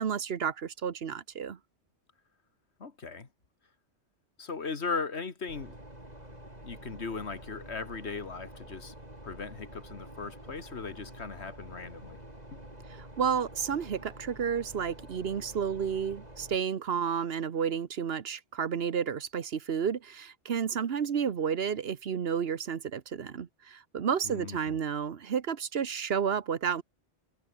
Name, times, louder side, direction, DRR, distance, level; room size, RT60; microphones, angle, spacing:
voice 1, 0.0-1.6 13.0-26.8, right 7 dB, 60° right, 1.2 m, -31 dB
voice 2, 2.8-3.3 4.4-5.8 6.6-8.9 9.2-12.2 12.5-12.6 24.2-24.8, left 4 dB, 70° left, 2.2 m, -38 dB
sound 1, 5.5-16.6, right 1 dB, 35° right, 6.6 m, -48 dB
omnidirectional pair, 1.2 m